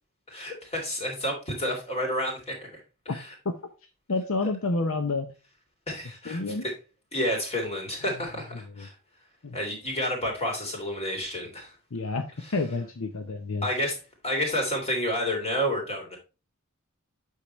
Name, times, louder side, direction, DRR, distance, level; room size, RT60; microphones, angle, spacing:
voice 1, 0.3-3.3 5.9-6.7 7.1-8.9 9.5-11.7 12.4-12.5 13.6-16.2, equal, 30° left, 1 dB, 3.2 m, -30 dB
voice 2, 4.1-5.3 6.3-6.6 8.8-8.9 9.4-9.6 11.9-12.2 12.5-13.7, left 3 dB, 65° left, 7 dB, 0.8 m, -29 dB
8.4 x 6.5 x 3.1 m, 0.30 s
head